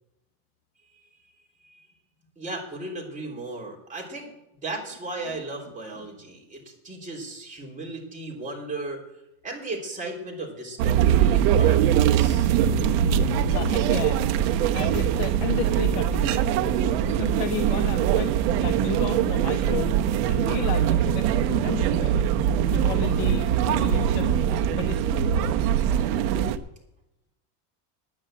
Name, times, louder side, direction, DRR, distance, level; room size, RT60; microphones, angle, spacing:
voice 1, 2.4-4.3 4.6-9.0 9.4-12.5, right 2 dB, 15° right, -2 dB, 3.4 m, -35 dB
sound 1, 10.8-26.6, right 9 dB, 70° right, 1.0 m, -22 dB
voice 2, 13.4-16.6 17.1-20.0 20.3-22.2 22.7-25.3, left 11 dB, 60° left, 7 dB, 0.9 m, -34 dB
9.7 x 9.7 x 7.5 m, 0.90 s
cardioid pair, 150°, 50 cm